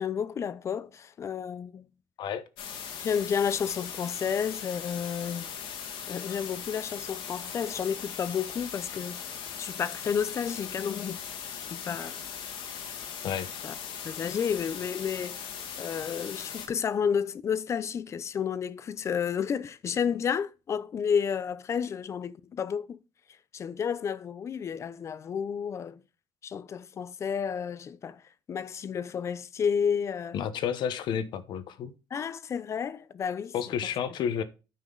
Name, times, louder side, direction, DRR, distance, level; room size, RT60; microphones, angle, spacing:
voice 1, 0.0-1.9 3.0-5.5 6.1-9.2 9.6-11.2 11.7-12.2 13.6-13.8 14.0-15.4 15.8-23.0 23.5-26.0 26.4-28.2 28.5-30.4 32.1-33.5, left 7 dB, 35° left, 0.6 m, -31 dB
sound 1, 2.6-16.7, left 7 dB, 85° left, 2.3 m, -39 dB
voice 2, 30.3-31.9 33.5-34.4, left 8 dB, 65° left, 0.9 m, -31 dB
9.2 x 5.8 x 3.9 m
cardioid pair, 160°, 8 cm